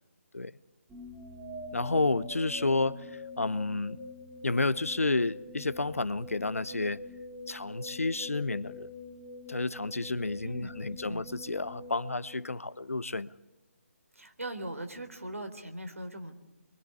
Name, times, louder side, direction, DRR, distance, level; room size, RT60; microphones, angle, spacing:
sound 1, 0.9-13.0, left 2 dB, 10° right, 3.9 m, -45 dB
voice 1, 1.7-3.0 3.4-4.0 4.4-7.0 7.5-8.9 9.5-13.3, left 3 dB, 70° left, 1.0 m, -30 dB
voice 2, 14.2-16.3, right 1 dB, 70° right, 3.7 m, -40 dB
27.0 x 24.0 x 8.4 m
figure-of-eight pair, 145°, 8 cm